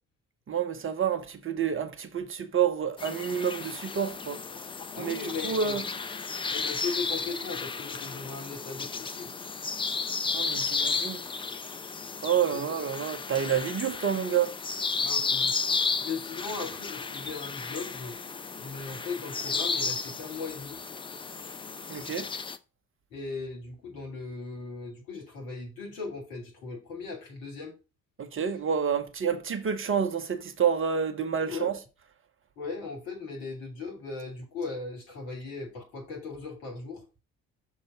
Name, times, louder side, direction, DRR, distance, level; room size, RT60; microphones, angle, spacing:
voice 1, 0.5-4.4 5.0-5.2 5.4-5.8 10.3-11.2 12.2-14.5 21.9-22.3 28.2-31.7, right 7 dB, 30° right, 0.9 m, -28 dB
sound 1, 3.0-22.6, left 4 dB, 15° left, 0.4 m, -33 dB
voice 2, 4.9-5.8 6.5-9.3 12.5-12.7 15.0-18.2 18.6-20.8 23.1-27.7 31.4-31.7 32.6-37.0, left 4 dB, 65° left, 2.2 m, -38 dB
6.5 x 3.1 x 5.8 m
figure-of-eight pair, 50°, 43 cm